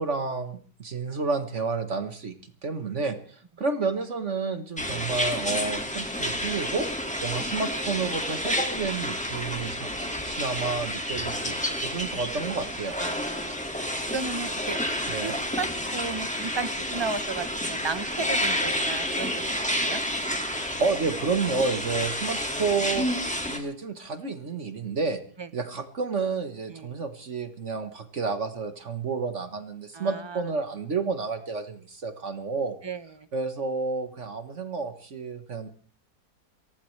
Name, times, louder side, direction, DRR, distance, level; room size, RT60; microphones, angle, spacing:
voice 1, 0.0-2.3 2.6-6.9 7.2-9.9 10.2-13.0 15.1-15.4 20.6-23.1 23.5-25.2 25.5-32.8 33.3-35.7, right 4 dB, 50° right, 8 dB, 1.5 m, -30 dB
sound 1, 4.8-23.6, equal, 5° left, 1.9 m, -30 dB
voice 2, 13.0-13.6 14.1-14.8 15.2-15.7 15.9-19.4 19.8-20.0 25.4-25.5 26.7-26.9 29.9-30.4 32.8-33.3, right 4 dB, 20° right, 11 dB, 0.7 m, -34 dB
29.0 x 15.0 x 3.2 m, 0.43 s
omnidirectional pair, 1.7 m